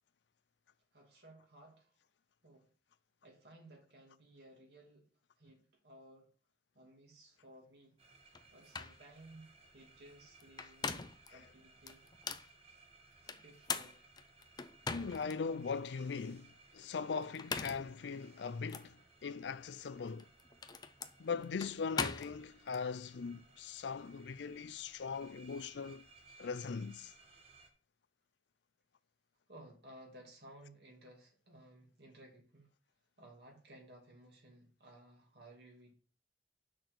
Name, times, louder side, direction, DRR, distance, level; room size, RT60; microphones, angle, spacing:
voice 1, 0.9-1.9 2.4-2.7 3.2-5.1 5.4-6.3 6.7-8.0 8.5-12.0 13.3-14.0 29.5-32.7 33.2-36.0, right 1 dB, 65° right, 2.7 m, -58 dB
sound 1, 8.0-27.7, right 3 dB, 35° right, 1.5 m, -63 dB
sound 2, 8.3-8.4 8.7-9.0 10.4-11.3 11.9-12.5 13.3-15.4 15.9-16.0 17.2-17.9 18.7-18.9 20.1-22.8, left 5 dB, 25° left, 0.5 m, -41 dB
voice 2, 14.9-20.3 21.2-26.1 26.4-27.1, left 5 dB, 80° left, 0.4 m, -40 dB
6.1 x 4.4 x 6.5 m
head